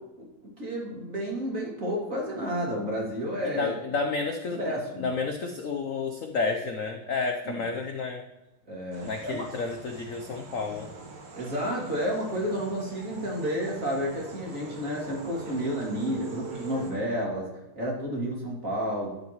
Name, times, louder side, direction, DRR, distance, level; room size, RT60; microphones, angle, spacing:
voice 1, 0.0-3.7 4.5-5.1 7.4-7.6 8.7-9.4 11.3-17.5 17.7-19.1, equal, 35° right, -3 dB, 3.1 m, -31 dB
voice 2, 3.4-4.6 5.0-8.2 9.0-10.9, left 4 dB, 60° left, 4 dB, 0.8 m, -31 dB
sound 1, 8.9-16.9, right 3 dB, 80° right, 2.6 m, -43 dB
12.5 x 9.2 x 3.1 m, 1.0 s
omnidirectional pair, 2.4 m